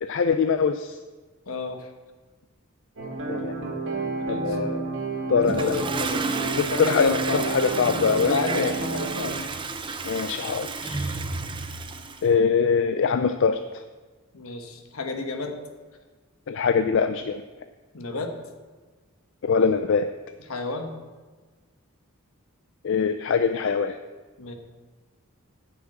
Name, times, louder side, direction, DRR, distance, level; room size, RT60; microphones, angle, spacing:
voice 1, 0.0-1.0 3.3-3.5 4.3-4.8 5.3-5.7 6.6-8.7 10.0-11.2 12.2-13.6 16.5-17.4 19.4-20.1 22.8-24.0, left 5 dB, 60° left, 9 dB, 0.4 m, -23 dB
voice 2, 1.5-1.9 4.2-4.6 5.5-6.2 6.7-7.5 8.2-9.3 14.3-15.6 17.9-18.3 20.5-20.9 24.4-24.5, left 3 dB, 75° left, 5 dB, 1.3 m, -31 dB
sound 1, 3.0-9.3, right 3 dB, 60° right, 2.1 m, -31 dB
Toilet flush, 5.4-12.3, right 4 dB, 20° right, 0.5 m, -32 dB
9.4 x 6.1 x 7.4 m, 1.3 s
head